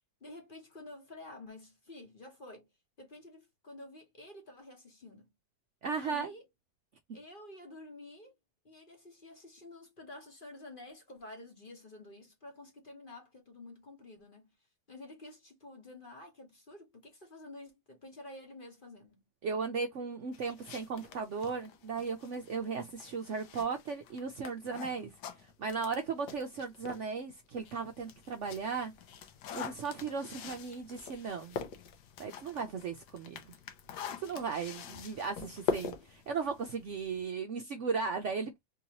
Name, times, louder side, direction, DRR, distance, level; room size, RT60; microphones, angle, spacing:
voice 1, 0.2-2.7 3.0-5.3 6.0-6.4 7.1-8.3 8.6-14.5 14.9-19.3, left 2 dB, 35° left, 1.1 m, -50 dB
voice 2, 5.8-6.3 19.4-25.1 25.4-28.9 29.5-31.6 32.2-33.4 34.2-38.6, right 5 dB, 65° right, 0.8 m, -36 dB
sound 1, 20.3-27.1 27.5-37.3, left 6 dB, 85° left, 1.4 m, -43 dB
3.8 x 2.8 x 2.8 m
omnidirectional pair, 1.8 m